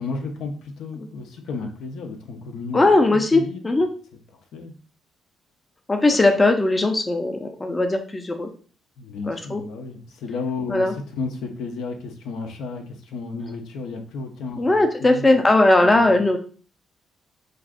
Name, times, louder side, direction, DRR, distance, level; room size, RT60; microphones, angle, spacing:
voice 1, 0.0-2.8 3.1-3.6 4.5-4.7 9.0-15.4 15.8-16.1, left 4 dB, 80° left, 4 dB, 0.5 m, -33 dB
voice 2, 2.7-3.9 5.9-8.5 9.3-9.6 10.7-10.9 14.6-16.4, left 2 dB, 20° left, 5 dB, 0.4 m, -19 dB
2.4 x 2.4 x 3.5 m, 0.41 s
cardioid pair, 90°, 0 cm